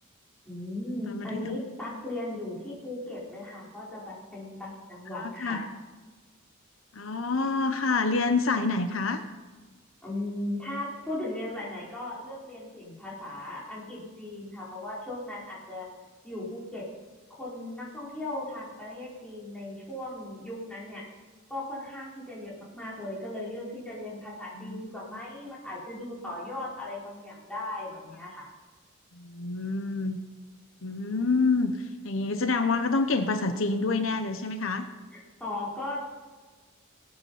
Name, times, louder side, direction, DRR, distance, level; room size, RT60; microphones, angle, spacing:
voice 1, 0.4-5.6 10.0-15.9 16.2-16.8 17.3-21.1 21.5-28.5 35.1-36.0, left 1 dB, 5° left, -7 dB, 4.7 m, -37 dB
voice 2, 1.1-1.6 5.2-5.6 6.9-9.2 24.6-25.2 29.1-30.2 30.8-34.9, left 3 dB, 70° left, 8 dB, 0.9 m, -27 dB
20.0 x 8.8 x 5.7 m, 1.3 s
head